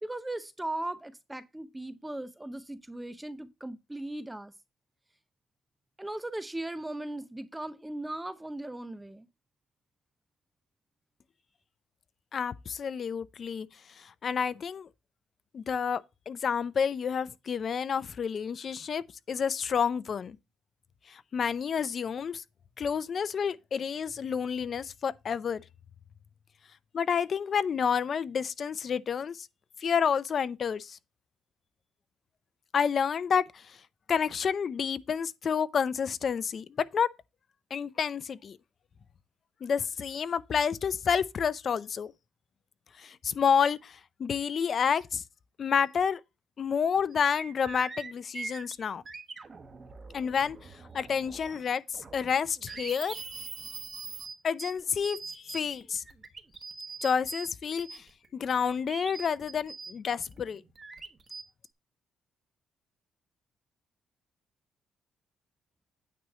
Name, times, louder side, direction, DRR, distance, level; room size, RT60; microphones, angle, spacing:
voice 1, 0.0-4.5 6.0-9.3, right 1 dB, 10° right, 0.6 m, -38 dB
voice 2, 12.3-13.7 14.0-14.9 15.5-20.4 21.1-22.4 22.8-25.6 26.9-29.5 29.8-31.0 32.7-33.6 34.1-37.1 37.7-38.6 39.6-42.1 43.0-45.2 45.6-46.2 46.6-49.0 50.1-50.6 50.9-53.2 54.4-56.0 57.0-58.0 58.3-60.6, left 7 dB, 50° left, 0.5 m, -29 dB
sound 1, 46.7-46.8 47.1-51.7 51.9-57.5 57.8-61.4, right 4 dB, 35° right, 1.2 m, -43 dB
9.3 x 3.1 x 6.5 m
cardioid pair, 90°, 0 cm